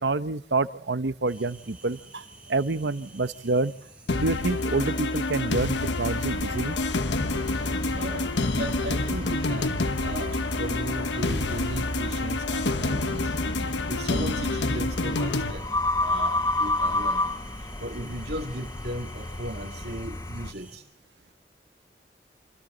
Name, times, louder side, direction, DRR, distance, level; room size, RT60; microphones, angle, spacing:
voice 1, 0.0-2.2 2.5-3.7 4.2-6.8, right 3 dB, 85° right, 13 dB, 1.0 m, -27 dB
sound 1, 1.3-20.8, right 2 dB, 5° right, 7.1 m, -49 dB
sound 2, 4.1-15.5, left 2 dB, 90° left, 1.2 m, -28 dB
sound 3, 6.0-20.5, left 2 dB, 20° left, 0.9 m, -32 dB
voice 2, 7.5-13.4 13.9-15.7 16.0-17.3 17.6-20.8, right 1 dB, 65° right, -1 dB, 2.4 m, -37 dB
27.0 x 26.5 x 4.0 m, 0.64 s
head